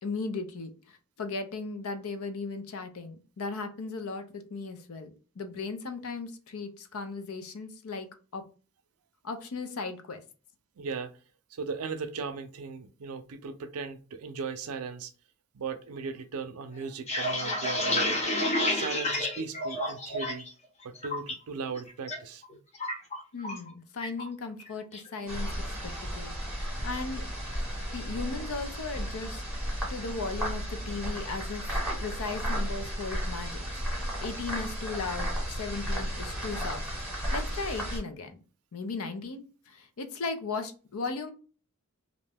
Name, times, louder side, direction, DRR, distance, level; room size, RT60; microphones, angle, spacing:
voice 1, 0.0-8.1 8.3-8.4 9.2-10.2 23.3-27.3 27.9-29.4 29.9-31.7 32.0-38.4 38.7-41.3, left 4 dB, 75° left, 0.5 m, -37 dB
voice 2, 10.8-11.1 11.5-15.1 15.5-18.2 18.7-20.5 20.8-22.4, right 5 dB, 85° right, 0.5 m, -37 dB
sound 1, 16.8-20.5 20.8-21.3 21.7-22.2 22.4-23.7 24.0-24.3 24.6-25.1, left 1 dB, 30° left, 0.7 m, -30 dB
sound 2, 25.3-38.0, equal, 5° right, 1.1 m, -34 dB
2.5 x 2.2 x 3.3 m
head